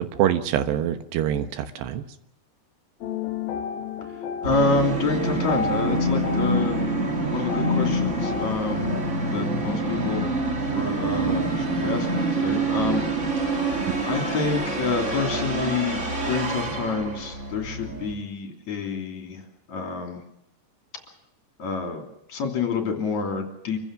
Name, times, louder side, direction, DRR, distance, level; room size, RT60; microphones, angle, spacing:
voice 1, 0.0-2.0 13.9-14.0, right 10 dB, 80° right, 9 dB, 3.3 m, -25 dB
sound 1, 3.0-8.5, left 7 dB, 65° left, 3.0 m, -32 dB
voice 2, 4.4-6.8 7.3-9.0 9.3-10.3 10.7-13.7 14.1-20.2 21.6-23.8, left 4 dB, 45° left, 3 dB, 4.0 m, -28 dB
Musical instrument, 4.4-18.1, right 2 dB, 35° right, 1.1 m, -26 dB
26.5 x 15.0 x 7.6 m, 0.79 s
omnidirectional pair, 4.9 m